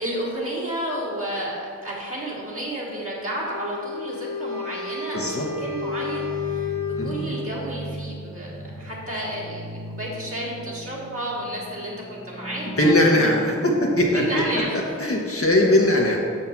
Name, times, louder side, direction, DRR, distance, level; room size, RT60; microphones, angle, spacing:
voice 1, 0.0-13.0 14.1-15.1, right 1 dB, 45° right, -6 dB, 1.9 m, -31 dB
Wind instrument woodwind instrument, 3.3-7.7, left 5 dB, 65° left, 1.4 m, -31 dB
voice 2, 5.1-5.5 7.0-7.2 12.8-16.2, left 1 dB, 45° left, -2 dB, 1.2 m, -20 dB
sound 1, 5.5-14.6, right 1 dB, 30° right, 1.2 m, -38 dB
6.4 x 6.4 x 5.8 m, 2.2 s
wide cardioid pair, 80°, 31 cm